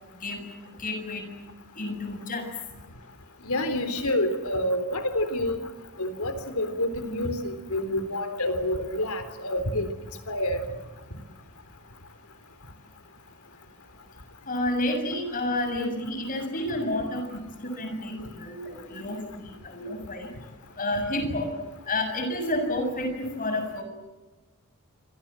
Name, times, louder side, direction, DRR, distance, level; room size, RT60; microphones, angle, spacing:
voice 1, 0.8-1.3 1.8-2.4 14.5-17.2 17.6-20.3 20.8-21.5 21.9-23.8, left 1 dB, 40° left, 5 dB, 7.0 m, -30 dB
voice 2, 3.4-5.6 6.0-9.9 10.3-10.7, left 1 dB, 80° left, 10 dB, 3.7 m, -28 dB
27.5 x 25.5 x 7.6 m, 1.2 s
head